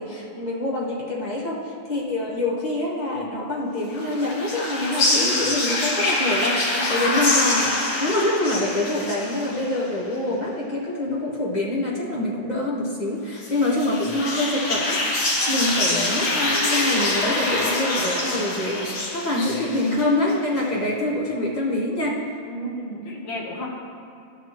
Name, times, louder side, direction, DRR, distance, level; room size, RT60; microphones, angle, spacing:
voice 1, 0.0-15.0 15.5-22.3, left 1 dB, 35° left, -4 dB, 0.6 m, -25 dB
sound 1, 3.9-9.9 13.4-20.3, left 2 dB, 85° left, 2.1 m, -25 dB
voice 2, 6.8-7.1 22.5-23.7, equal, 70° left, -1 dB, 1.8 m, -33 dB
13.0 x 5.9 x 2.9 m, 2.6 s
omnidirectional pair, 2.2 m